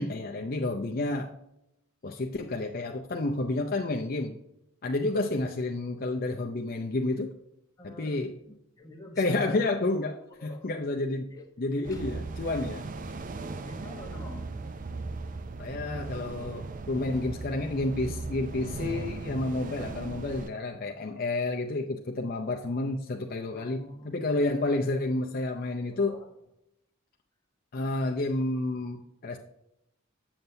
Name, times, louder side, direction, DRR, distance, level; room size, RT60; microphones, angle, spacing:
voice 1, 0.0-1.3 2.0-4.4 4.8-7.3 7.8-8.4 9.2-11.3 11.6-12.9 15.6-26.1 27.7-29.4, left 2 dB, 45° left, 1 dB, 0.5 m, -30 dB
voice 2, 7.8-9.7 10.4-10.7 11.3-11.4 11.7-12.0 13.6-14.5 23.4-24.2 25.9-26.3, left 2 dB, 15° left, -1 dB, 1.1 m, -47 dB
sound 1, 11.8-20.5, right 3 dB, 40° right, 0.4 m, -38 dB
7.9 x 7.3 x 2.7 m, 0.83 s
head